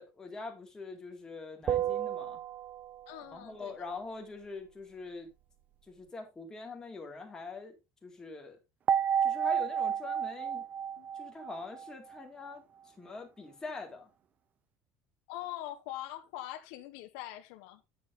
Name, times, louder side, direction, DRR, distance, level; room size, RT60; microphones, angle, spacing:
voice 1, 0.0-2.4 3.3-5.3 5.9-8.6 9.2-10.7 11.1-14.1, left 3 dB, 10° left, 2.1 m, -44 dB
sound 1, 1.7-3.2 8.9-12.2, right 8 dB, 25° right, 0.4 m, -31 dB
voice 2, 3.1-3.9 11.0-11.1 15.3-17.8, left 14 dB, 90° left, 1.2 m, -43 dB
9.3 x 7.0 x 3.8 m
cardioid pair, 170°, 6 cm